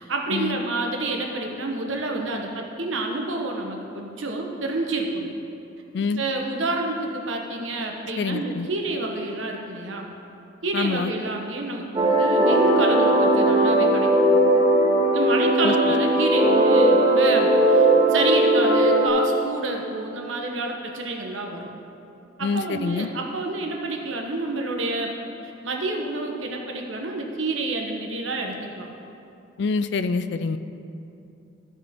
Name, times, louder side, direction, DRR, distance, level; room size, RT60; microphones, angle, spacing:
voice 1, 0.0-5.3 6.2-10.1 10.6-14.1 15.1-21.7 22.4-25.1 25.4-28.9, right 2 dB, 80° right, 1 dB, 1.1 m, -28 dB
voice 2, 8.2-8.7 10.7-11.1 15.6-15.7 22.4-23.1 29.6-30.6, left 4 dB, 60° left, 12 dB, 0.3 m, -26 dB
sound 1, 12.0-19.1, right 1 dB, 20° right, 1.1 m, -18 dB
14.5 x 5.2 x 3.6 m, 2.7 s
head